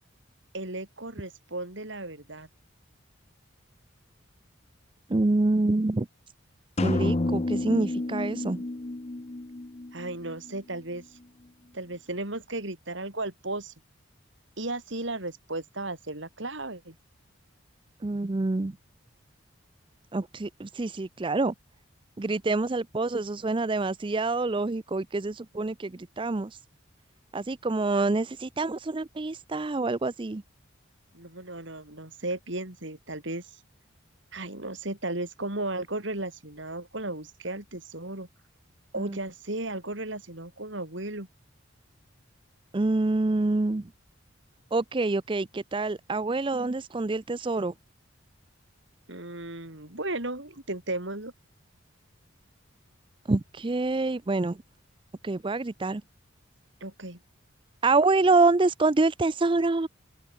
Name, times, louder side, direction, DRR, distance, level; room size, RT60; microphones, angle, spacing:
voice 1, 0.5-2.5 9.9-11.0 11.7-13.7 14.6-16.9 31.1-33.5 34.3-38.3 38.9-41.3 49.1-51.3 56.8-57.2, right 2 dB, 65° right, 4.5 m, -35 dB
voice 2, 5.1-6.1 6.8-8.6 18.0-18.7 20.1-21.5 22.2-26.6 27.3-30.4 39.0-39.2 42.7-43.9 44.7-47.7 53.3-54.6 55.2-56.0 57.8-59.9, right 3 dB, 25° right, 0.5 m, -26 dB
sound 1, 6.8-10.6, left 2 dB, 30° left, 0.7 m, -30 dB
open air
head